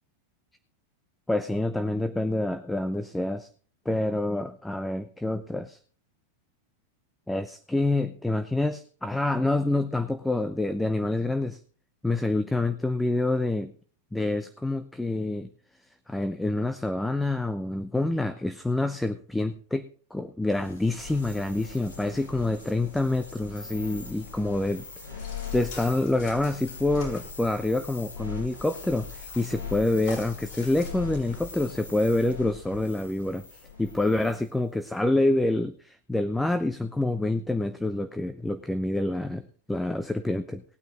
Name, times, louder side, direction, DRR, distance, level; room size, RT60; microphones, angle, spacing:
voice 1, 1.3-3.5 3.9-5.8 7.3-11.6 12.0-13.7 14.1-15.5 16.1-24.8 25.1-25.3 25.5-33.4 33.8-40.6, left 2 dB, 5° left, 10 dB, 0.8 m, -27 dB
sound 1, 20.5-34.5, left 6 dB, 80° left, 7.1 m, -41 dB
sound 2, 25.2-31.0, left 4 dB, 50° left, 5.9 m, -46 dB
18.5 x 9.1 x 4.0 m, 0.42 s
figure-of-eight pair, 90°, 0 cm